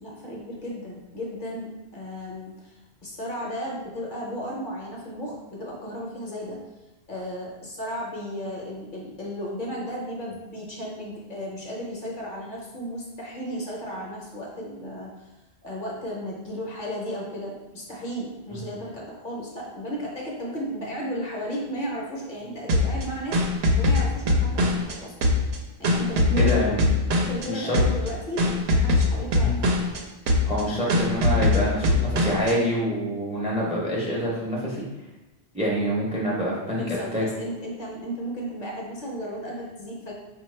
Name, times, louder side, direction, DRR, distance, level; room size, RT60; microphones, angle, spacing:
voice 1, 0.0-6.6 7.1-15.3 15.6-25.1 25.8-26.7 27.1-29.5 36.8-40.1, equal, 55° left, -3 dB, 0.8 m, -34 dB
sound 1, 22.7-24.9 25.2-27.5 27.7-28.1 28.4-30.0 30.3-30.6 30.9-32.5, left 2 dB, 75° right, 0.8 m, -21 dB
voice 2, 26.4-26.9 27.5-27.8 29.4-29.6 30.4-34.8 35.5-37.2, equal, 10° right, -5 dB, 0.6 m, -26 dB
4.2 x 2.3 x 3.2 m, 1.0 s
omnidirectional pair, 1.1 m